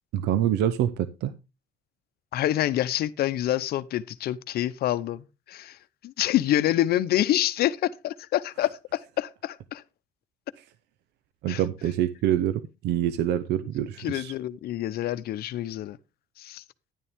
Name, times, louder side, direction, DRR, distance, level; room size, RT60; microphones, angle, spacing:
voice 1, 0.1-1.3 11.4-14.3, right 11 dB, 80° right, 0.7 m, -26 dB
voice 2, 2.3-5.8 6.0-9.8 11.5-11.6 14.0-16.0 16.4-16.6, left 13 dB, 65° left, 0.8 m, -27 dB
10.5 x 9.8 x 3.5 m
cardioid pair, 110°, 17 cm